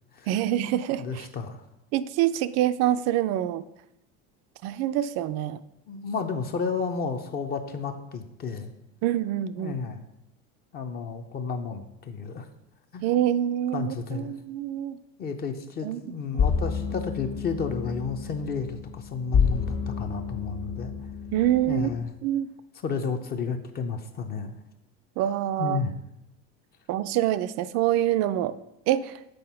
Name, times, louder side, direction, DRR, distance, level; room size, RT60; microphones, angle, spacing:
voice 1, 0.3-1.3 1.9-3.6 4.6-5.6 9.0-9.8 13.0-15.0 15.8-16.0 16.3-16.5 21.3-21.9 22.2-22.5 25.2-25.8 26.9-28.5 28.9-29.2, right 12 dB, 55° right, 14 dB, 0.4 m, -26 dB
voice 2, 1.0-1.6 5.9-8.7 9.6-10.0 10.7-12.4 12.9-13.0 13.7-14.3 15.2-20.9 21.7-22.1 22.8-24.5 25.6-25.9, left 5 dB, 30° left, 6 dB, 0.6 m, -32 dB
sound 1, 16.4-22.0, left 6 dB, 50° left, 1.3 m, -29 dB
7.8 x 4.2 x 5.5 m, 0.86 s
cardioid pair, 140°, 31 cm